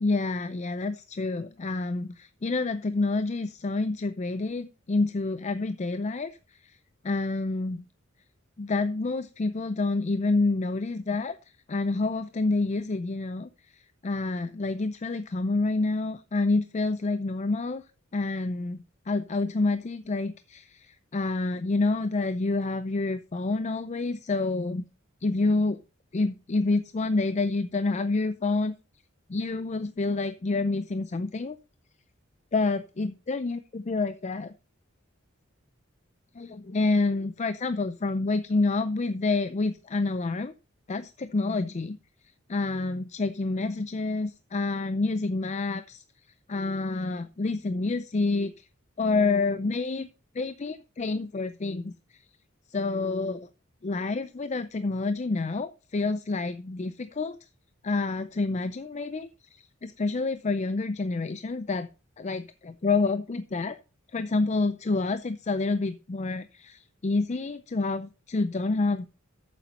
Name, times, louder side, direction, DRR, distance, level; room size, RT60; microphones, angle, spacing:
voice 1, 0.0-6.4 6.6-6.8 7.0-7.8 8.6-11.4 11.7-17.8 18.1-24.8 25.2-25.8 26.1-28.7 29.3-31.6 32.5-34.5 36.4-40.5 40.9-42.0 42.5-46.0 46.5-48.7 49.0-50.1 50.3-51.9 52.7-53.5 53.8-57.4 57.8-61.9 62.2-63.8 64.1-69.1, left 3 dB, 35° left, 12 dB, 0.5 m, -28 dB
8.4 x 7.3 x 5.3 m, 0.32 s
head